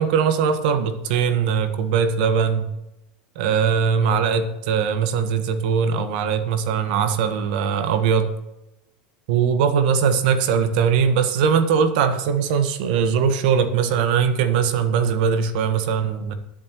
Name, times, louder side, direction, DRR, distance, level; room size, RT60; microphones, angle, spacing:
voice 1, 0.0-2.7 3.3-8.3 9.3-16.3, right 6 dB, 65° right, 9 dB, 1.4 m, -20 dB
21.0 x 7.9 x 3.1 m, 0.92 s
hypercardioid pair, 95°, 5 cm